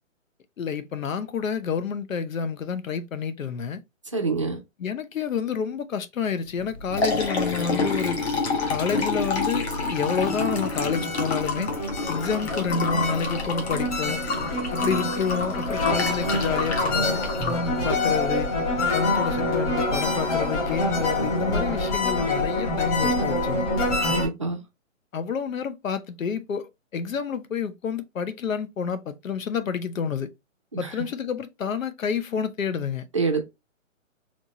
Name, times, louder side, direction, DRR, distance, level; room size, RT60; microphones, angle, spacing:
voice 1, 0.6-3.8 4.8-8.2 8.7-11.7 12.1-14.2 14.7-18.5 18.9-23.6 25.1-30.3 30.8-33.1, left 6 dB, 80° left, 0.9 m, -29 dB
voice 2, 4.1-4.6 24.1-24.6 30.7-31.0 33.1-33.4, right 4 dB, 25° right, 0.5 m, -26 dB
Liquid, 6.6-18.5, left 3 dB, 55° left, 1.6 m, -29 dB
sound 1, 9.8-24.3, left 2 dB, 25° left, 1.6 m, -26 dB
4.2 x 3.0 x 3.0 m
hypercardioid pair, 165°, 39 cm